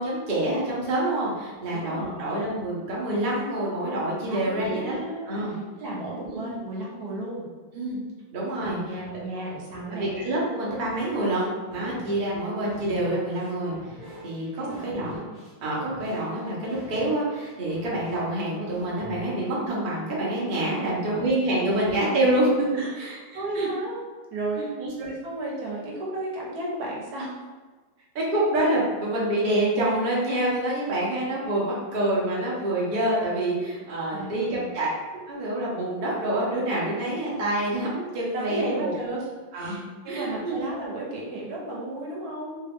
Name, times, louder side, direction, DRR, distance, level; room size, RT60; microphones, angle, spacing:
voice 1, 0.0-5.0 5.3-5.5 6.2-6.5 7.7-8.0 8.3-8.8 9.9-13.9 14.2-15.2 15.6-22.7 22.9-23.7 24.6-24.9 28.1-34.9 35.3-38.9 39.5-39.8 40.1-40.6, right 1 dB, 85° right, -6 dB, 0.4 m, -27 dB
voice 2, 1.7-2.3 4.3-7.5 8.6-10.1 11.8-12.0 14.6-14.9 20.8-21.3 21.5-21.9 22.7-22.9 23.3-24.0 24.3-24.6 25.0-27.3 28.0-28.1 34.1-34.7 38.3-39.3 39.5-42.6, right 2 dB, 60° right, -4 dB, 1.1 m, -34 dB
sound 1, 9.1-19.7, equal, ahead, 0.3 m, -45 dB
3.3 x 2.4 x 3.4 m, 1.3 s
omnidirectional pair, 2.2 m